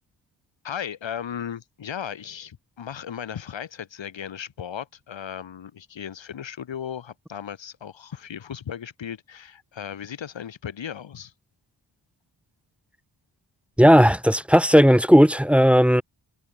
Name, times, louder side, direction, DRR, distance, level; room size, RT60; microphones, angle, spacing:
voice 1, 0.6-11.3, left 8 dB, 85° left, 7.3 m, -36 dB
voice 2, 13.8-16.0, equal, 5° right, 3.5 m, -15 dB
wide cardioid pair, 130°, 44 cm